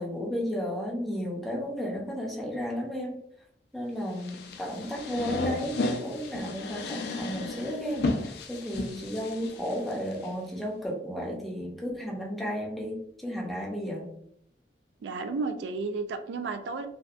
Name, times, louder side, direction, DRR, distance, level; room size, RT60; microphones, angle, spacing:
voice 1, 0.0-3.2 3.7-14.1, equal, ahead, -3 dB, 0.5 m, -33 dB
sound 1, 4.1-10.3, left 2 dB, 60° left, 0.3 m, -33 dB
voice 2, 15.0-16.9, right 4 dB, 80° right, 8 dB, 0.3 m, -32 dB
2.6 x 2.1 x 2.4 m, 0.71 s
head